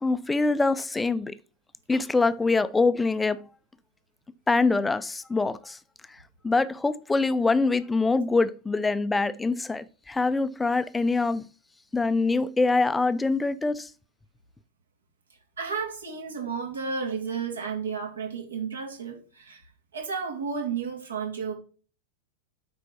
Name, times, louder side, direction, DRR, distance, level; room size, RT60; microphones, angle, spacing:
voice 1, 0.0-1.4 1.9-3.5 4.5-5.8 6.4-11.4 11.9-13.9, left 3 dB, 10° left, 0.5 m, -24 dB
voice 2, 15.6-19.6 19.9-21.5, right 5 dB, 70° right, 2.8 m, -32 dB
8.2 x 5.3 x 4.2 m
figure-of-eight pair, 90°, 0 cm